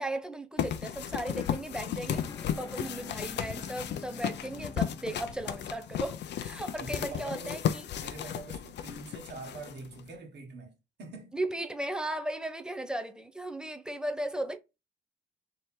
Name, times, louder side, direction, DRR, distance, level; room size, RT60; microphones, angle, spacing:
voice 1, 0.0-2.3 2.6-7.9 11.3-14.6, right 1 dB, 5° right, 0.7 m, -36 dB
sound 1, 0.6-10.1, left 9 dB, 65° left, 0.5 m, -35 dB
sound 2, 1.0-7.1, left 4 dB, 15° left, 0.3 m, -48 dB
voice 2, 6.8-7.6 8.0-11.4, right 3 dB, 60° right, 1.6 m, -44 dB
3.3 x 2.9 x 4.3 m
cardioid pair, 90°, 20 cm